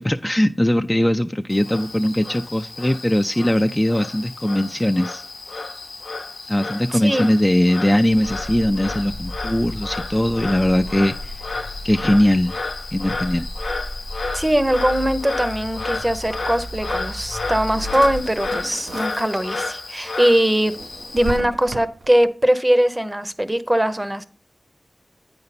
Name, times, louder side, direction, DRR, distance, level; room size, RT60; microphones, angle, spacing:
voice 1, 0.0-5.2 6.5-11.4 11.8-12.6 12.9-13.5, left 1 dB, 15° left, 7 dB, 0.3 m, -20 dB
Frog, 1.5-21.4, left 3 dB, 85° left, 0.8 m, -32 dB
voice 2, 6.9-7.3 14.3-20.7 21.1-24.2, right 1 dB, 15° right, 11 dB, 0.6 m, -20 dB
sound 1, 8.1-18.2, left 1 dB, 90° right, 2.4 m, -34 dB
Drawer open or close, 17.2-19.8 20.2-22.3, right 3 dB, 70° right, 0.4 m, -35 dB
8.7 x 5.3 x 4.0 m, 0.41 s
wide cardioid pair, 60°, 0 cm